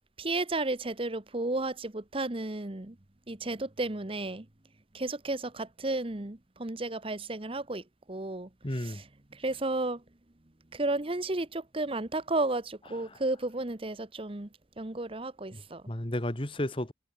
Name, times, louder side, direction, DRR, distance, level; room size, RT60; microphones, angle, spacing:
voice 1, 0.2-3.0 3.3-4.5 4.9-9.0 9.3-10.0 10.7-14.5 14.8-15.8, right 2 dB, 30° right, 1.1 m, -33 dB
voice 2, 8.6-9.0 13.1-13.2 15.5-16.9, left 1 dB, 30° left, 1.8 m, -33 dB
head